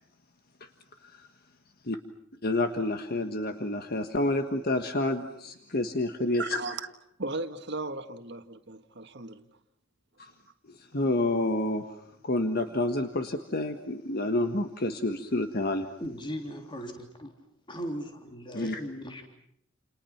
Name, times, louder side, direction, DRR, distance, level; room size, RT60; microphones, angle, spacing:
voice 1, 2.4-6.6 10.2-10.3 10.7-15.9 18.5-18.8, left 2 dB, 50° left, 1.5 m, -29 dB
voice 2, 6.4-6.8 7.2-9.5, right 3 dB, 60° right, 1.8 m, -36 dB
voice 3, 16.0-17.3 17.7-19.2, equal, 25° left, 3.3 m, -38 dB
29.5 x 29.0 x 5.9 m
head